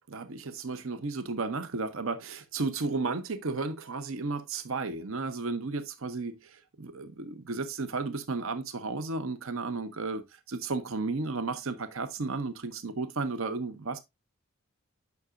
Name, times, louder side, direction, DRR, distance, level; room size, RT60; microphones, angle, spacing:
voice 1, 0.1-6.4 6.8-10.2 10.5-14.0, right 3 dB, 70° right, 0.8 m, -33 dB
9.5 x 5.9 x 2.5 m
head